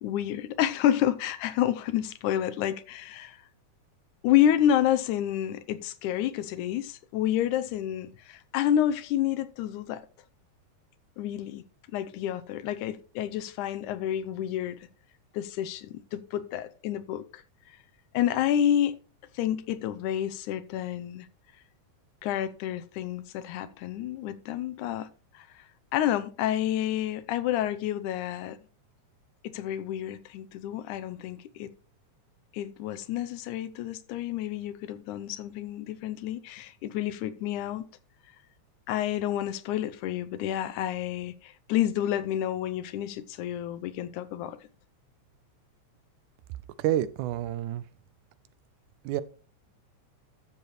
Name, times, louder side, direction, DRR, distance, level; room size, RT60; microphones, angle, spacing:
voice 1, 0.0-3.4 4.2-10.1 11.2-11.6 11.9-14.8 15.3-17.4 17.7-17.8 18.1-19.0 19.3-21.3 22.2-25.6 25.9-28.6 29.4-31.7 32.5-37.9 38.9-44.7, left 11 dB, 85° left, 2.1 m, -29 dB
voice 2, 46.8-47.8 49.0-49.2, right 12 dB, 85° right, 2.1 m, -28 dB
13.5 x 7.2 x 3.1 m
omnidirectional pair, 3.5 m